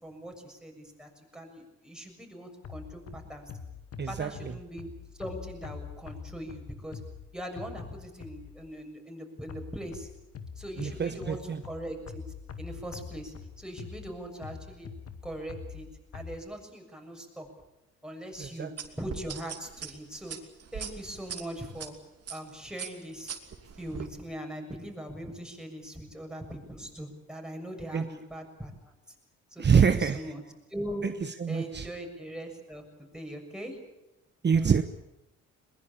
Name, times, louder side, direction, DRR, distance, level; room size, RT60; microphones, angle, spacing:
voice 1, 0.0-3.5 4.1-4.9 5.2-7.0 7.3-10.1 10.6-11.4 11.6-12.2 12.6-14.9 15.2-15.8 16.1-17.5 18.0-20.4 20.7-21.9 22.3-23.4 23.8-28.9 29.5-30.4 30.7-31.1 31.5-33.8 34.5-34.7, right 1 dB, ahead, 6.8 m, -41 dB
sound 1, 2.6-8.7 9.5-16.3, left 6 dB, 50° left, 2.1 m, -44 dB
voice 2, 4.0-4.6 10.8-11.6 18.4-18.7 27.9-28.1 29.6-30.3 31.0-31.9 34.4-34.8, right 6 dB, 35° right, 1.1 m, -26 dB
sound 2, 18.8-21.9 22.3-22.5 22.8-24.1, right 7 dB, 55° right, 2.9 m, -40 dB
21.5 x 21.0 x 8.6 m
cardioid pair, 90°, 30 cm